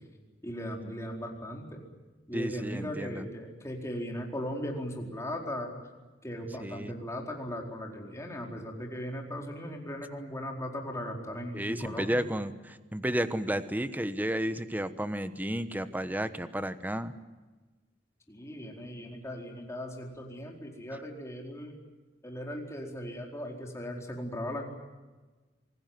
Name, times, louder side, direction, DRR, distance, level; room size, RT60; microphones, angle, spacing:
voice 1, 0.4-1.8 2.3-5.7 6.2-12.2 18.3-21.8 22.2-24.6, equal, 15° left, 1 dB, 4.4 m, -38 dB
voice 2, 2.3-3.2 6.6-6.9 11.5-17.1, equal, 10° right, 11 dB, 1.1 m, -32 dB
26.5 x 19.0 x 9.4 m, 1.2 s
head